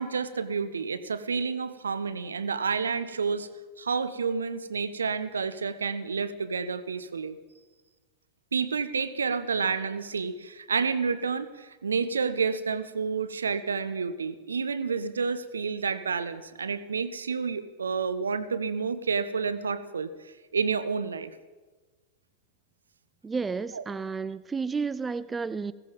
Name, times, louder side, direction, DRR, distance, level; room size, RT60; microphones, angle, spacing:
voice 1, 0.0-3.5 3.8-7.4 8.5-21.3 23.7-23.8, right 5 dB, 70° right, 14 dB, 0.7 m, -30 dB
voice 2, 23.2-25.7, right 5 dB, 15° right, 14 dB, 0.4 m, -31 dB
16.0 x 15.0 x 5.3 m, 1.3 s
figure-of-eight pair, 90°, 0 cm